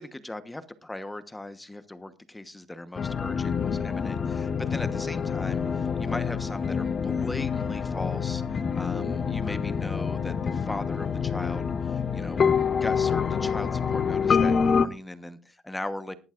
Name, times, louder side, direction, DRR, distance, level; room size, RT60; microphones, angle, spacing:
voice 1, 0.0-16.1, left 1 dB, 10° left, 12 dB, 1.1 m, -38 dB
sound 1, 3.0-14.9, left 6 dB, 30° left, 0.8 m, -27 dB
19.5 x 11.0 x 2.5 m, 0.33 s
cardioid pair, 125°, 0 cm